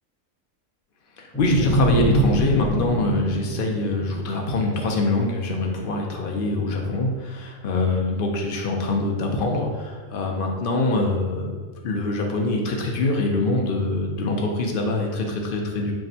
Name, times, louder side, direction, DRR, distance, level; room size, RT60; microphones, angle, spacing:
voice 1, 1.2-11.6 11.8-15.9, left 2 dB, 60° left, 0 dB, 0.5 m, -24 dB
sound 1, 1.3-4.6, right 1 dB, 10° left, 0.9 m, -24 dB
5.8 x 2.1 x 2.7 m, 1.4 s
omnidirectional pair, 1.4 m